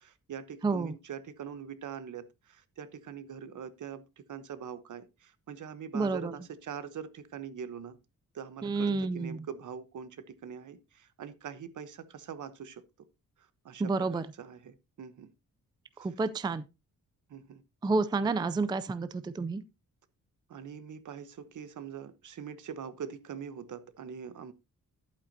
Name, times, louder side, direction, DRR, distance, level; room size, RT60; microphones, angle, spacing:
voice 1, 0.0-8.0 8.3-13.1 13.4-15.3 17.3-17.6 20.5-24.5, right 7 dB, 65° right, 1.0 m, -43 dB
voice 2, 0.6-1.0 5.9-6.3 8.6-9.5 13.8-14.3 16.0-16.6 17.8-19.6, right 3 dB, 15° right, 0.4 m, -30 dB
11.5 x 8.3 x 2.7 m
wide cardioid pair, 180°, 33 cm